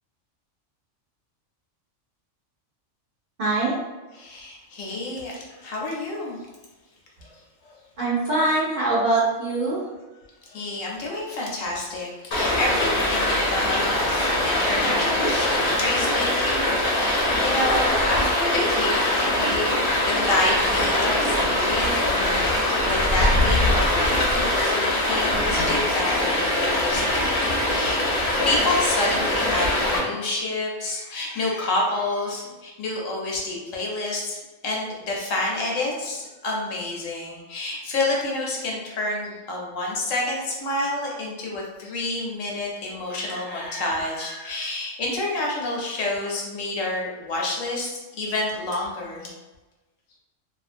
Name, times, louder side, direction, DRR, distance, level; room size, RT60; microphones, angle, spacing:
voice 1, 3.4-3.8 8.0-9.8, right 2 dB, 60° right, -8 dB, 0.5 m, -23 dB
voice 2, 4.1-6.4 7.2-7.3 10.5-13.8 14.1-22.5 22.8-27.3 27.7-28.1 28.4-34.4 34.6-49.3, left 2 dB, 90° left, -2 dB, 1.1 m, -29 dB
Stream, 12.3-30.0, left 1 dB, 55° left, 0.7 m, -22 dB
2.4 x 2.3 x 2.4 m, 1.2 s
omnidirectional pair, 1.3 m